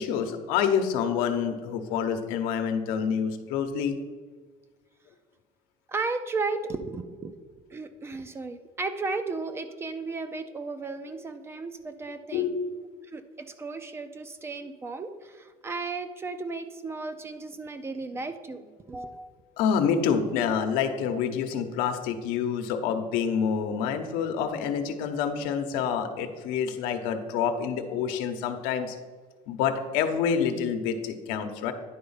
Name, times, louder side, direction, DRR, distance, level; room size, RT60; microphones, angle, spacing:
voice 1, 0.0-3.9 12.3-12.9 19.6-29.0 29.5-31.7, left 7 dB, 80° left, 7 dB, 0.9 m, -27 dB
voice 2, 5.9-7.4 7.7-12.5 13.1-19.3, right 3 dB, 15° right, 10 dB, 0.4 m, -34 dB
10.0 x 4.3 x 5.6 m, 1.5 s
cardioid pair, 175°, 15 cm